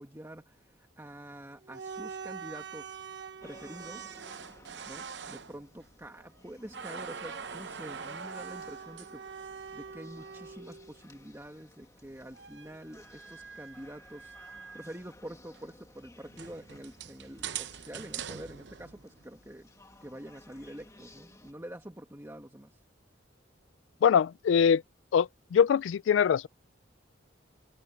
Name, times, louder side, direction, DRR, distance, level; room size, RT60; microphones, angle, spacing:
voice 1, 0.0-3.0 3.4-4.2 4.9-14.4 14.7-19.7 20.0-22.8, right 1 dB, 15° right, 1.7 m, -46 dB
sound 1, 1.6-6.4 6.7-11.0 12.3-15.0 15.5-15.6 16.3-19.3, right 7 dB, 65° right, 0.8 m, -43 dB
sound 2, 3.4-21.5, left 1 dB, 15° left, 2.0 m, -56 dB
voice 2, 24.0-24.8 25.1-26.5, left 7 dB, 80° left, 0.3 m, -23 dB
head